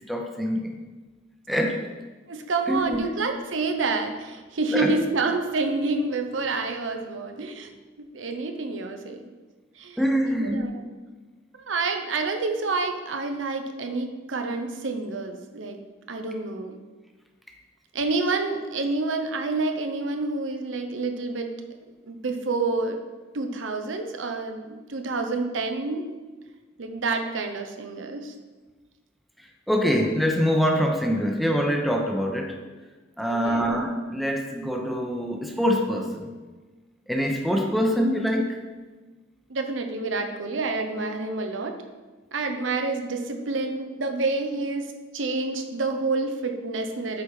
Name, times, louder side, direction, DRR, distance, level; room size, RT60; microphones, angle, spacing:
voice 1, 0.1-0.7 1.5-1.9 2.7-3.0 4.7-4.9 10.0-10.6 29.7-32.5 33.2-36.3 37.1-38.6, equal, ahead, 1 dB, 0.8 m, -24 dB
voice 2, 2.3-7.7 8.0-9.3 9.8-10.9 11.5-15.8 16.1-16.8 17.9-21.5 22.0-23.0 23.3-26.0 26.8-28.3 33.2-33.7 39.5-41.8 42.3-47.2, right 3 dB, 80° right, 5 dB, 0.8 m, -28 dB
8.2 x 4.3 x 4.9 m, 1.3 s
head